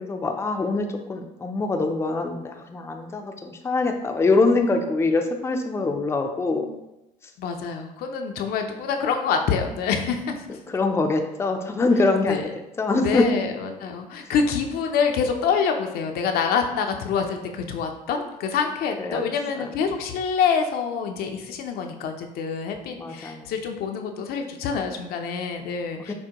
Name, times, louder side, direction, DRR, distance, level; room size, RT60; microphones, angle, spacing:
voice 1, 0.0-6.7 10.7-12.5 12.8-13.3 14.3-14.4 19.0-19.2 19.5-19.7 23.0-23.5 26.1-26.2, left 3 dB, 15° left, 4 dB, 0.4 m, -24 dB
voice 2, 7.4-10.4 12.3-12.4 13.0-26.1, left 6 dB, 70° left, 4 dB, 0.5 m, -26 dB
5.9 x 2.1 x 2.9 m, 0.94 s
cardioid pair, 100°, 16 cm